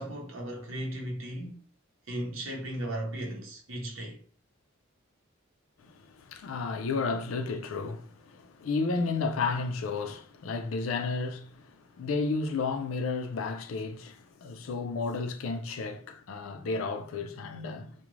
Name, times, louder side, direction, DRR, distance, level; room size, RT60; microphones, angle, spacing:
voice 1, 0.0-1.6 2.1-4.2, right 1 dB, 70° right, 0.8 m, -36 dB
voice 2, 5.8-17.9, left 4 dB, 75° left, 0.4 m, -32 dB
2.4 x 2.1 x 3.0 m
head